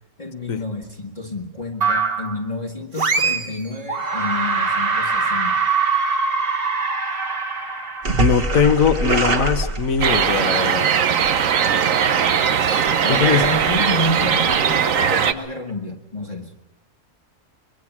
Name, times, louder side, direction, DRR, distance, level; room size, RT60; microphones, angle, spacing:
voice 1, 0.2-5.6 12.6-16.5, left 2 dB, 30° left, -1 dB, 1.5 m, -30 dB
sound 1, 1.8-2.4 3.0-3.6 3.9-10.3, right 4 dB, 40° right, 1.5 m, -22 dB
voice 2, 8.2-10.9 13.1-13.5, left 6 dB, 65° left, 9 dB, 1.5 m, -20 dB
sound 2, 10.0-15.3, right 7 dB, 65° right, 1.3 m, -19 dB
23.5 x 22.5 x 6.0 m, 0.94 s
omnidirectional pair, 1.5 m